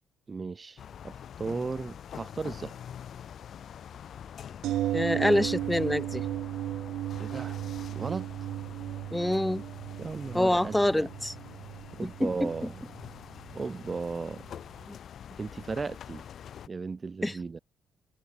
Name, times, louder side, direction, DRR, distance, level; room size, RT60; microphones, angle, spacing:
voice 1, 0.3-2.8 7.2-7.6 7.9-8.3 10.0-11.1 11.9-12.8 13.5-14.4 15.4-16.2 16.7-17.6, right 4 dB, 30° right, 0.7 m, -36 dB
sound 1, 0.8-16.7, left 9 dB, 60° left, 0.7 m, -46 dB
sound 2, 4.6-14.5 14.8-14.9, right 13 dB, 85° right, 0.8 m, -35 dB
voice 2, 4.9-6.3 9.1-9.6 10.3-11.3 12.0-12.5 14.9-15.0 17.2-17.4, left 1 dB, 5° left, 0.4 m, -26 dB
cardioid pair, 90°, 0 cm